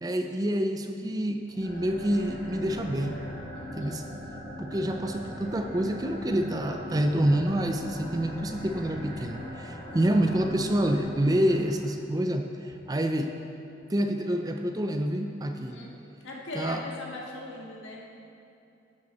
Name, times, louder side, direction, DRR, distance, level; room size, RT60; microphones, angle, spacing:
voice 1, 0.0-3.2 3.7-4.1 4.6-13.3 13.9-15.8 16.6-16.8, right 1 dB, 20° right, 6 dB, 0.5 m, -27 dB
sound 1, 1.5-12.0, equal, 15° left, 2.2 m, -41 dB
voice 2, 3.5-4.0 15.5-15.9 16.2-18.0, left 2 dB, 85° left, -2 dB, 1.8 m, -40 dB
12.0 x 8.8 x 4.3 m, 2.7 s
head